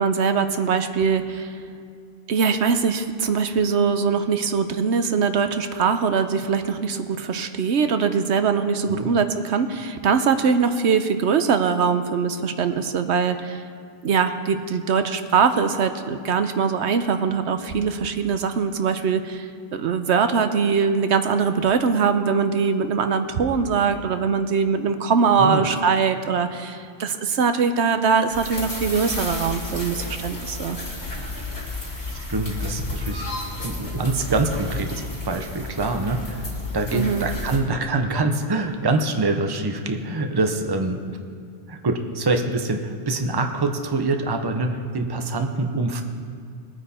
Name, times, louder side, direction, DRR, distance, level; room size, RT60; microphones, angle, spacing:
voice 1, 0.0-1.6 2.3-13.6 14.0-30.8 36.9-37.3, right 6 dB, 75° right, 9 dB, 1.0 m, -22 dB
voice 2, 25.4-25.8 32.1-33.2 33.6-36.5 36.7-41.2 41.7-46.0, right 2 dB, 25° right, 5 dB, 0.8 m, -25 dB
sound 1, 28.3-37.6, left 2 dB, 65° left, 3.5 m, -32 dB
21.5 x 9.2 x 4.3 m, 2.2 s
omnidirectional pair, 1.2 m